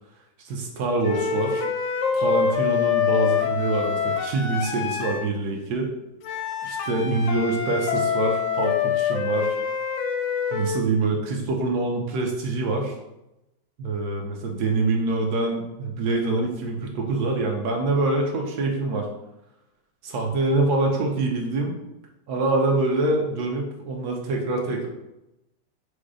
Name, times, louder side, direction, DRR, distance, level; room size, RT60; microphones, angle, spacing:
voice 1, 0.4-1.7 2.1-5.9 6.6-9.5 10.5-13.0 13.8-19.1 20.0-21.7 22.3-24.9, right 2 dB, 70° right, 1 dB, 1.0 m, -25 dB
sound 1, 1.0-5.3 6.2-10.9, left 7 dB, 75° left, 1.1 m, -25 dB
5.0 x 2.0 x 4.7 m, 0.92 s
omnidirectional pair, 2.3 m